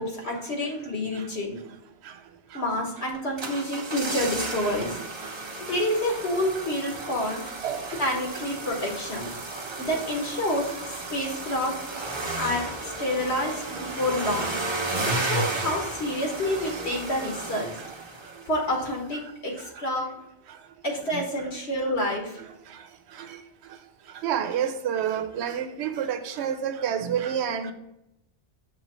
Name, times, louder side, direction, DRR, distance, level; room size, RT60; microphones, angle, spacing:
voice 1, 0.0-1.6 2.5-5.0 5.7-7.4 8.0-9.3 9.8-11.7 12.4-14.6 15.1-17.7 18.5-20.1 20.8-22.4, left 1 dB, 85° left, 0 dB, 1.5 m, -28 dB
sound 1, 3.1-18.6 18.9-19.0, right 2 dB, 30° right, 0.6 m, -33 dB
voice 2, 7.6-8.0 23.2-23.3 24.2-27.7, right 8 dB, 85° right, 9 dB, 0.9 m, -28 dB
6.5 x 3.1 x 5.3 m, 0.84 s
omnidirectional pair, 1.1 m